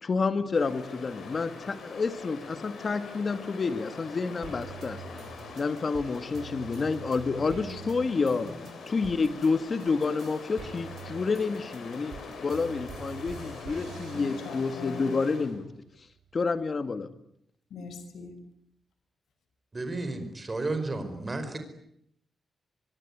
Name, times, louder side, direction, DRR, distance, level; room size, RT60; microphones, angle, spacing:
voice 1, 0.0-5.0 5.6-8.5 8.9-12.1 12.4-15.7 16.3-17.1, left 4 dB, 35° left, 10 dB, 2.1 m, -29 dB
Stream, 0.5-15.6, left 4 dB, 70° left, 7.9 m, -44 dB
sound 1, 4.4-9.5 9.8-15.0 15.5-16.4, right 6 dB, 90° right, 5.1 m, -46 dB
voice 2, 7.4-8.9 14.1-15.2 17.7-18.4, left 4 dB, 85° left, 8 dB, 5.7 m, -44 dB
voice 3, 19.7-21.6, right 2 dB, 20° right, 8 dB, 5.0 m, -32 dB
24.5 x 24.0 x 9.9 m, 0.74 s
wide cardioid pair, 155°, 0 cm